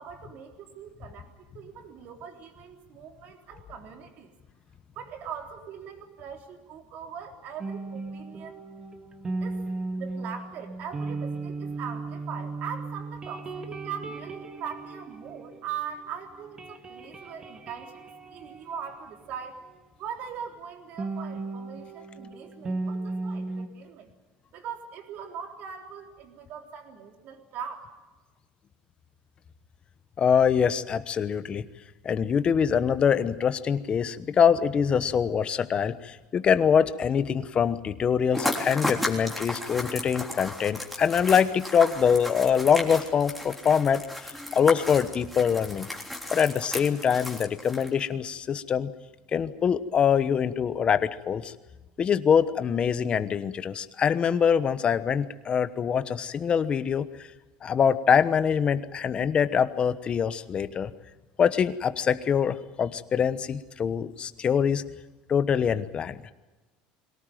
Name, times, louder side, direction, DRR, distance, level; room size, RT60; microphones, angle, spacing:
voice 1, 0.0-4.3 5.0-8.6 9.4-9.6 10.0-19.6 20.0-24.1 24.5-27.9, right 7 dB, 55° right, 3 dB, 3.7 m, -41 dB
sound 1, 7.6-16.1 16.4-19.8 21.0-23.7, right 3 dB, 25° right, 1.9 m, -36 dB
voice 2, 30.2-31.6 32.0-44.0 44.5-45.9 46.3-48.9 49.3-51.5 52.0-57.1 57.6-60.9 61.4-64.8 65.3-66.2, left 7 dB, 30° left, 12 dB, 1.1 m, -24 dB
sound 2, 38.3-48.1, left 1 dB, ahead, 3.5 m, -34 dB
22.5 x 18.5 x 9.2 m, 1.2 s
cardioid pair, 125°, 3 cm